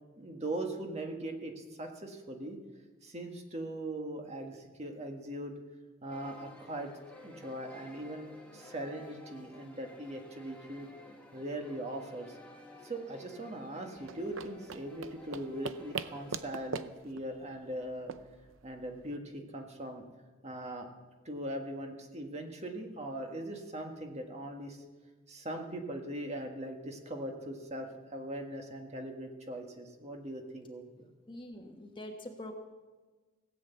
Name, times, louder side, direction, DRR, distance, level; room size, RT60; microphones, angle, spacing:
voice 1, 0.2-2.6 3.0-5.5 6.0-6.9 7.2-8.3 8.5-10.9 11.3-12.4 12.8-18.1 18.6-20.1 20.4-20.9 21.2-24.8 25.3-31.1, right 1 dB, 35° right, 3 dB, 1.6 m, -40 dB
sound 1, 6.1-16.7, left 1 dB, 5° left, 1.8 m, -54 dB
sound 2, 14.0-19.2, right 5 dB, 75° right, 0.6 m, -43 dB
voice 2, 31.3-32.5, left 1 dB, 25° left, 4 dB, 1.3 m, -44 dB
17.5 x 7.9 x 8.3 m, 1.3 s
head